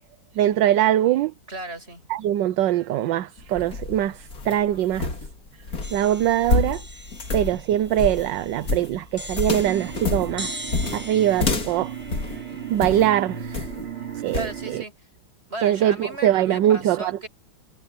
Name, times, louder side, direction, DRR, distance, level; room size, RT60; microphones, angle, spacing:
voice 1, 0.3-1.3 2.1-5.1 5.9-6.8 7.3-10.6 10.9-11.9 12.7-13.7 14.1-14.8 15.6-17.1, right 12 dB, 70° right, 1.3 m, -22 dB
voice 2, 1.5-2.0 14.4-15.1 15.5-17.3, right 1 dB, 30° right, 8.1 m, -35 dB
sound 1, 3.4-13.1 13.5-13.9 14.3-14.6, left 3 dB, 45° left, 2.9 m, -28 dB
sound 2, 5.8-13.8, equal, 5° right, 6.7 m, -41 dB
sound 3, 9.6-14.9, right 8 dB, 85° right, 5.2 m, -35 dB
omnidirectional pair, 2.2 m